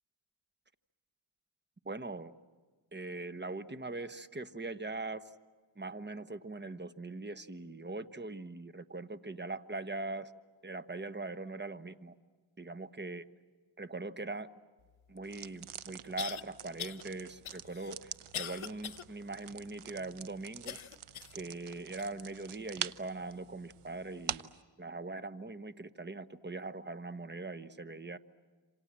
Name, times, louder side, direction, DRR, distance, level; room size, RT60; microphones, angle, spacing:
voice 1, 1.8-2.3 2.9-5.3 5.8-10.3 10.6-12.1 12.6-13.2 13.8-14.5 15.1-20.8 21.3-24.5 24.8-28.2, right 3 dB, 20° right, 12 dB, 1.2 m, -41 dB
sound 1, 15.2-15.3 16.2-16.4 16.8-17.0 17.4-19.0 19.5-19.6 20.7-21.4 22.0-22.1 22.9-23.0, left 9 dB, 70° left, 1.1 m, -42 dB
sound 2, 15.2-24.6, right 10 dB, 85° right, 0.9 m, -46 dB
28.0 x 27.0 x 7.5 m, 1.4 s
cardioid pair, 65°, 49 cm